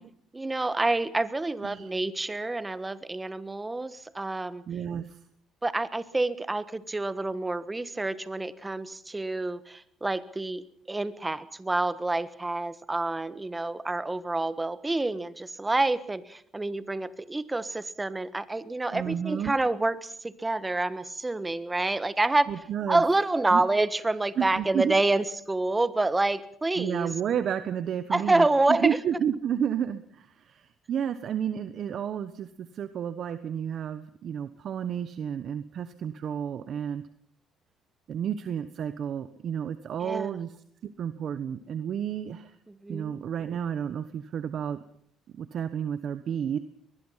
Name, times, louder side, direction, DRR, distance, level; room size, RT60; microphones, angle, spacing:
voice 1, 0.3-4.6 5.6-20.1 20.4-22.5 22.9-27.1 28.1-29.0 40.0-40.3 42.8-43.2, right 2 dB, 15° right, 14 dB, 1.4 m, -28 dB
voice 2, 4.7-5.2 18.9-19.5 22.5-23.0 23.5-23.6 24.4-24.9 26.8-37.0 38.1-40.6 40.8-42.5 42.9-44.8 45.4-46.6, right 8 dB, 55° right, 12 dB, 1.2 m, -31 dB
23.0 x 20.5 x 5.8 m, 0.64 s
cardioid pair, 105°, 0 cm